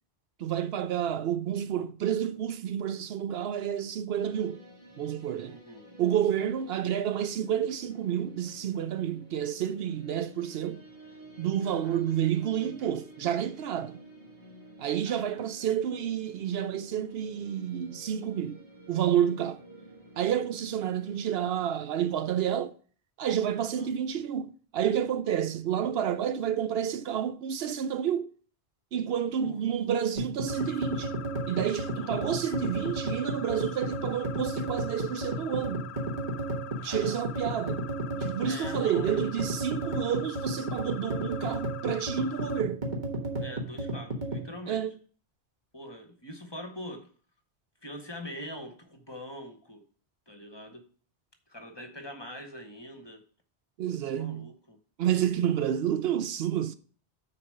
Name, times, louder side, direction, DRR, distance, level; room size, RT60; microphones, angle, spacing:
voice 1, 0.4-4.6 5.0-5.6 6.0-10.8 11.4-13.9 14.8-18.6 18.9-19.6 20.2-22.7 23.2-28.3 28.9-31.1 31.5-35.9 36.8-37.8 38.1-42.9 44.7-44.9 53.8-54.5 55.0-56.8, right 9 dB, 75° right, 0.8 m, -29 dB
sound 1, 4.1-21.7, right 1 dB, 25° right, 2.2 m, -51 dB
voice 2, 5.4-5.8 11.6-12.0 15.0-15.4 23.6-23.9 29.4-29.8 32.0-32.3 36.8-37.4 38.4-39.2 43.4-44.9 45.7-47.1 47.8-49.8 50.3-50.8 51.5-53.2 54.0-54.8 55.7-55.8, equal, 25° left, 0.9 m, -44 dB
sound 2, 30.2-44.5, right 1 dB, 45° right, 1.6 m, -33 dB
sound 3, 30.5-42.6, left 10 dB, 85° left, 0.8 m, -45 dB
6.6 x 4.4 x 6.5 m
omnidirectional pair, 1.1 m